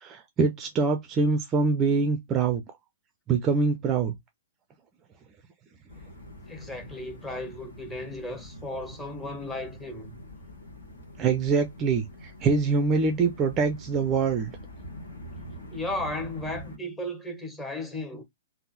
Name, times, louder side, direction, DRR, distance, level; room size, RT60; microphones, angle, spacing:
voice 1, 0.0-2.6 3.3-4.1 11.2-12.0 12.4-14.5, right 4 dB, 20° right, 0.5 m, -24 dB
sound 1, 5.9-16.8, left 1 dB, 65° left, 1.5 m, -45 dB
voice 2, 6.5-10.2 15.7-18.2, left 1 dB, 10° left, 0.9 m, -35 dB
3.5 x 2.1 x 4.1 m
figure-of-eight pair, 110°, 0 cm